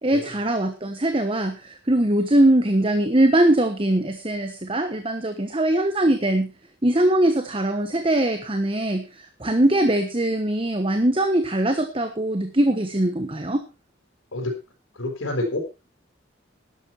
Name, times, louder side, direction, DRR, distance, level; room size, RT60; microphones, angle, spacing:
voice 1, 0.0-6.5 6.8-13.6, right 1 dB, 25° right, 8 dB, 1.2 m, -21 dB
voice 2, 14.9-15.7, left 2 dB, 85° left, 0 dB, 4.8 m, -28 dB
12.5 x 11.5 x 4.5 m, 0.30 s
head